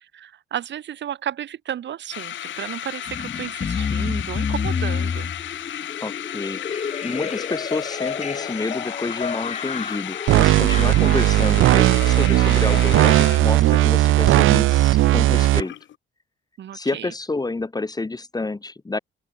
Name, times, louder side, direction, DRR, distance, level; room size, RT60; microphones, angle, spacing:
voice 1, 0.1-5.3 16.6-17.1, right 10 dB, 65° right, 2.5 m, -33 dB
sound 1, 2.1-16.0, left 11 dB, 70° left, 3.2 m, -34 dB
sound 2, 3.1-15.7, left 6 dB, 35° left, 1.2 m, -31 dB
voice 2, 6.0-15.7 16.7-19.0, left 3 dB, 20° left, 2.2 m, -29 dB
sound 3, 10.3-15.6, right 16 dB, 85° right, 1.0 m, -17 dB
open air
cardioid pair, 90°, 20 cm